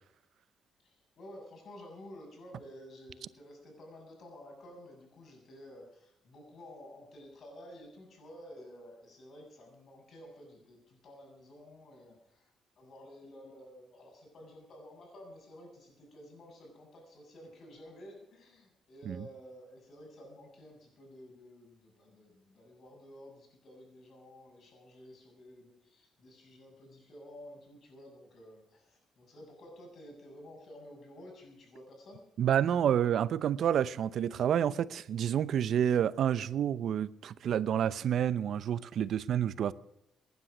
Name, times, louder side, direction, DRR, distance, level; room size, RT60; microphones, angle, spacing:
voice 1, 0.8-32.3, left 1 dB, 55° left, 7.1 m, -52 dB
voice 2, 32.4-39.7, right 9 dB, 65° right, 0.7 m, -29 dB
18.5 x 10.5 x 6.3 m
cardioid pair, 90°, 0 cm